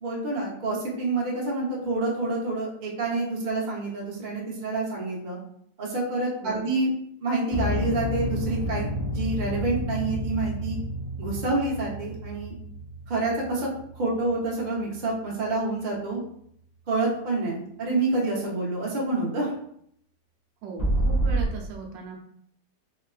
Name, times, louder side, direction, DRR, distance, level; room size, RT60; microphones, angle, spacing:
voice 1, 0.0-5.4 5.8-6.9 7.2-10.8 11.2-12.5 13.1-13.7 14.0-16.2 16.9-19.5, right 2 dB, 60° right, -3 dB, 0.4 m, -28 dB
sound 1, 7.5-15.9 20.8-21.5, equal, 50° left, 0.4 m, -30 dB
voice 2, 20.6-22.2, right 5 dB, 80° right, 0 dB, 1.3 m, -37 dB
3.5 x 2.3 x 2.3 m, 0.67 s
omnidirectional pair, 2.0 m